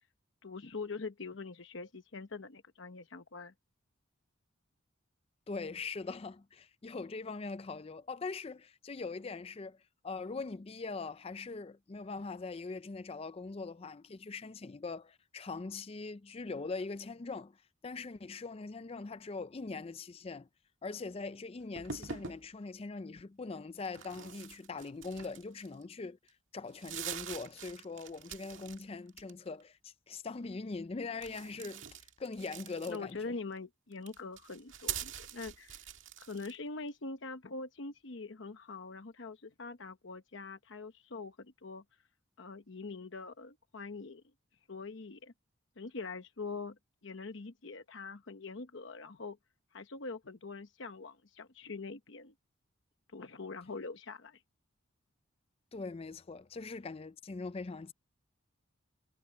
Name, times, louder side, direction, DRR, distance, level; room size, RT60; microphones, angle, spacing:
voice 1, 0.4-3.5 32.9-35.9 36.2-41.8 42.4-44.2 44.7-45.3 45.8-49.4 49.7-52.3 53.1-54.4, left 3 dB, 60° left, 0.9 m, -44 dB
voice 2, 5.5-9.8 10.0-17.6 17.8-20.5 20.8-26.2 26.5-33.3 55.7-57.9, left 4 dB, 30° left, 0.4 m, -42 dB
sound 1, 21.8-22.4 23.8-25.8 26.3-26.4 26.7-28.8 29.1-29.6 31.2-33.2 33.9-36.6, right 8 dB, 65° right, 2.0 m, -44 dB
head